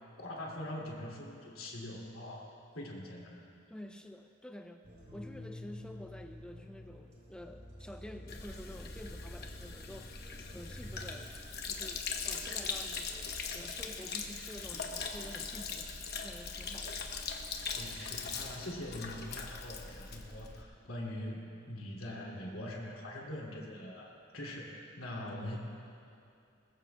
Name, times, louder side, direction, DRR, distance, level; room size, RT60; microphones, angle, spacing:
voice 1, 0.2-2.4 2.7-3.4 17.8-25.6, left 1 dB, 90° left, -2 dB, 2.7 m, -43 dB
voice 2, 3.7-4.8 5.1-10.2 10.5-11.3 11.6-17.0, equal, 5° left, 5 dB, 0.4 m, -49 dB
sound 1, 4.8-11.2, left 1 dB, 35° right, 3.2 m, -49 dB
Sink (filling or washing), 8.3-20.6, left 5 dB, 50° left, 1.0 m, -41 dB
21.0 x 20.0 x 2.3 m, 2.6 s
head